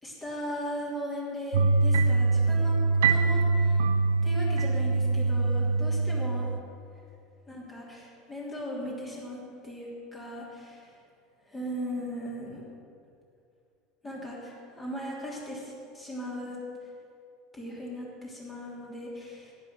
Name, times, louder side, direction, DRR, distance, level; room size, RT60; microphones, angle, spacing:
voice 1, 0.0-3.9 4.2-6.4 7.5-11.0 11.4-12.6 14.0-16.9 17.5-19.5, equal, 15° left, -5 dB, 3.0 m, -38 dB
sound 1, 1.5-6.6, right 3 dB, 65° right, 0.5 m, -24 dB
11.0 x 9.3 x 6.6 m, 2.5 s
figure-of-eight pair, 75°, 0 cm